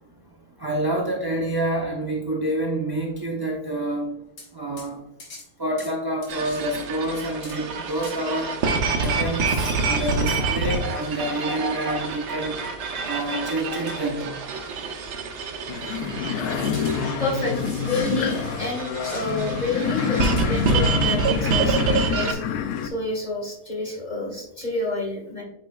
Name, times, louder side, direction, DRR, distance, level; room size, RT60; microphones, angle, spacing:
voice 1, 0.6-4.2 4.5-5.0 5.6-8.5 9.0-12.6 13.0-14.3, right 1 dB, 30° right, -1 dB, 0.4 m, -28 dB
sound 1, 4.4-4.5 4.8-4.9 5.2-5.5 5.8-5.9 6.2-6.6 7.4-7.6 8.0-8.2 9.0-11.3 11.6-11.7 13.9-14.2 14.5-14.6 16.7-18.7 19.0-19.3 20.2-20.8, left 3 dB, 90° left, 2.1 m, -45 dB
sound 2, 6.3-22.3, right 4 dB, 80° right, 1.5 m, -27 dB
sound 3, 15.7-22.9, left 7 dB, 75° left, 1.1 m, -27 dB
voice 2, 15.9-16.3 17.2-22.4 22.8-25.4, left 2 dB, 25° left, -2 dB, 1.6 m, -29 dB
8.6 x 5.1 x 2.3 m, 0.83 s
omnidirectional pair, 1.8 m